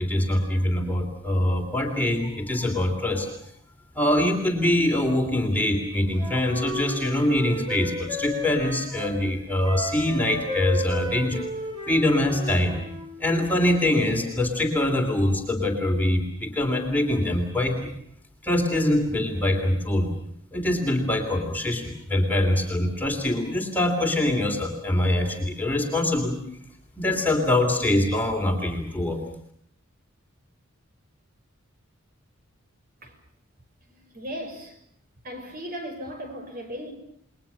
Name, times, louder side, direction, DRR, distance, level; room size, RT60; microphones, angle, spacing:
voice 1, 0.0-3.3 3.9-11.4 11.9-12.8 13.2-17.9 18.4-20.1 20.5-26.4 27.0-29.2, left 1 dB, 10° left, 3.1 m, -24 dB
Wind instrument woodwind instrument, 6.2-9.2 9.6-13.1, equal, 25° right, 7.8 m, -33 dB
voice 2, 33.9-34.8 35.2-36.9, equal, 45° right, 6.2 m, -37 dB
29.5 x 21.5 x 6.9 m
head